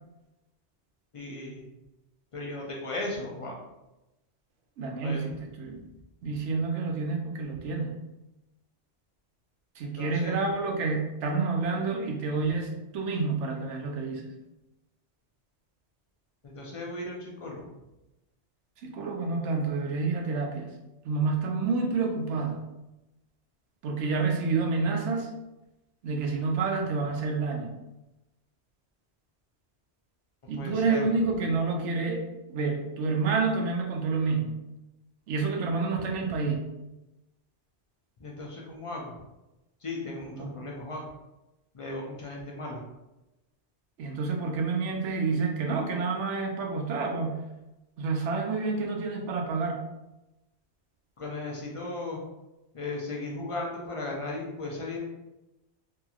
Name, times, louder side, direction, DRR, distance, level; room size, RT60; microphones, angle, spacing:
voice 1, 1.1-1.7 2.3-3.6 5.0-5.3 9.8-10.4 16.4-17.7 30.6-31.0 38.2-39.2 39.8-41.0 41.7-42.8 51.2-52.2 52.7-55.0, left 2 dB, 50° left, -2 dB, 0.4 m, -36 dB
voice 2, 4.8-5.8 6.2-8.0 9.8-14.3 18.8-20.7 21.0-22.6 23.8-25.3 26.0-27.7 30.5-32.2 32.5-34.6 35.3-36.7 40.3-40.6 44.0-47.5 48.0-49.8, right 4 dB, 80° right, 2 dB, 0.9 m, -29 dB
2.8 x 2.6 x 2.3 m, 0.98 s
omnidirectional pair, 1.2 m